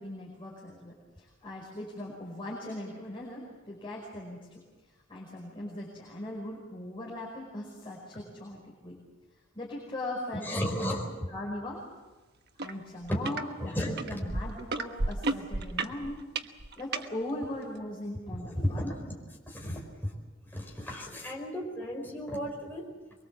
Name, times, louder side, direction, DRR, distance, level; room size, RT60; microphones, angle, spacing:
voice 1, 0.0-4.5 5.1-9.0 9.5-10.9 11.3-11.8 12.6-16.2 16.8-18.9, left 1 dB, 25° left, -4 dB, 5.1 m, -39 dB
voice 2, 10.3-11.1 13.1-13.2 13.6-14.2 18.3-19.2 19.5-20.1 20.5-22.9, equal, 10° left, -2 dB, 4.8 m, -34 dB
sound 1, 12.6-12.7 13.1-13.4 14.0-17.1 17.8-17.9, right 3 dB, 55° right, 1.2 m, -32 dB
24.0 x 23.5 x 7.5 m, 1.2 s
head